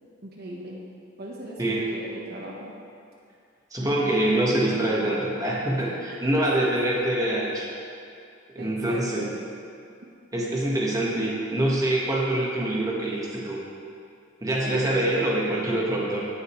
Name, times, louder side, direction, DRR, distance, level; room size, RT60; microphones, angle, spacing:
voice 1, 0.2-0.8 1.2-2.7 3.8-4.1 5.8-5.9 6.6-7.0 8.6-9.3 14.6-15.0, right 1 dB, 50° right, -3 dB, 1.1 m, -38 dB
voice 2, 3.7-7.7 8.5-9.3 10.3-13.6 14.4-16.2, right 1 dB, 15° right, -4 dB, 1.4 m, -25 dB
17.0 x 6.6 x 3.2 m, 2.4 s
head